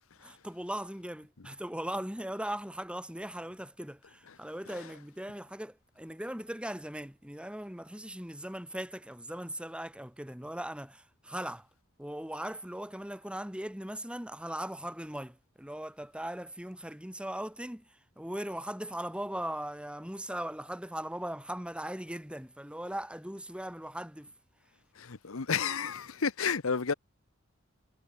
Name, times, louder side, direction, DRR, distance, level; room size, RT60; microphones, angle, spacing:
voice 1, 0.2-11.7 12.0-24.3, right 1 dB, 5° right, 4.8 m, -39 dB
voice 2, 25.0-26.9, left 6 dB, 80° left, 0.9 m, -31 dB
head